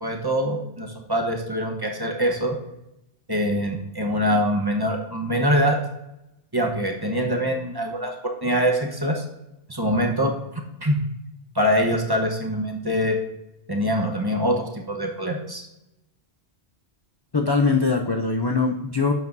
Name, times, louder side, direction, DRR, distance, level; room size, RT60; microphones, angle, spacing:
voice 1, 0.0-2.5 3.3-5.8 6.5-9.2 9.7-10.3 10.8-11.0 11.5-13.2 13.7-15.7, equal, 20° right, 1 dB, 1.0 m, -24 dB
voice 2, 17.3-19.1, left 4 dB, 35° left, 3 dB, 0.4 m, -22 dB
10.5 x 7.7 x 2.7 m, 0.90 s
omnidirectional pair, 1.2 m